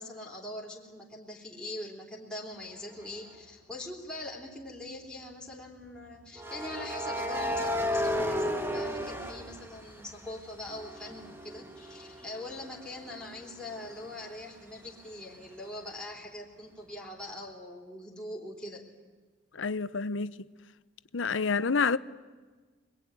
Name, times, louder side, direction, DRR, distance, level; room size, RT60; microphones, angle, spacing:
voice 1, 0.0-18.8, left 1 dB, 5° left, 3.6 m, -42 dB
sound 1, 3.1-3.3 6.4-10.3 10.7-14.2, equal, 10° right, 1.7 m, -34 dB
voice 2, 19.5-20.5 21.1-22.0, left 4 dB, 85° left, 0.8 m, -28 dB
25.5 x 21.5 x 9.8 m
head